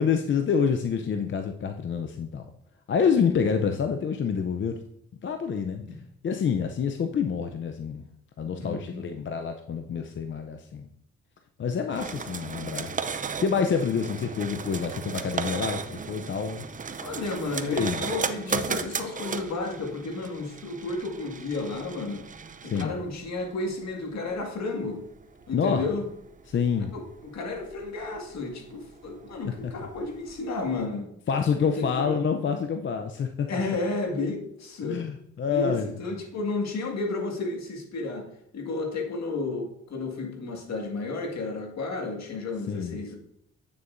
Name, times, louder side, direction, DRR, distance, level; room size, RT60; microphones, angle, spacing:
voice 1, 0.0-2.5 2.9-4.8 5.2-5.8 6.2-8.0 8.4-10.9 11.6-12.9 13.2-16.7 17.7-18.1 22.6-22.9 25.5-25.8 26.5-26.9 29.4-29.7 31.3-33.5 34.8-35.9 42.7-43.0, left 6 dB, 40° left, 6 dB, 0.6 m, -27 dB
voice 2, 8.6-9.1 17.0-22.3 22.6-25.0 25.5-26.0 26.9-31.1 31.6-32.1 33.5-35.0 35.5-38.3 38.5-43.2, left 3 dB, 60° left, 2 dB, 2.0 m, -32 dB
sound 1, 11.9-30.8, right 5 dB, 25° right, 0.6 m, -36 dB
8.9 x 6.8 x 2.6 m, 0.75 s
cardioid pair, 90°, 30 cm